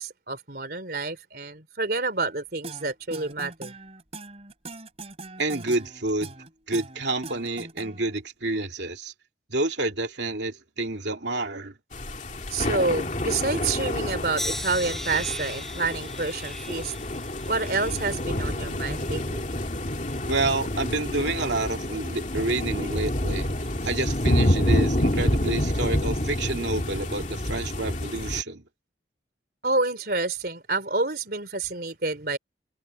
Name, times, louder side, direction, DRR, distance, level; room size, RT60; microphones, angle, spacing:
voice 1, 0.0-3.8 12.5-16.9 17.5-19.5 29.6-32.4, right 3 dB, 55° right, 3.6 m, -28 dB
sound 1, 2.6-8.2, right 2 dB, 35° right, 3.1 m, -41 dB
voice 2, 5.4-6.3 6.7-9.1 9.5-11.7 20.3-23.5 23.8-28.6, right 2 dB, 80° right, 2.7 m, -29 dB
sound 2, 11.9-28.4, left 1 dB, 45° left, 2.5 m, -28 dB
sound 3, 14.4-19.5 19.9-20.6 21.4-21.7, left 1 dB, ahead, 4.6 m, -39 dB
head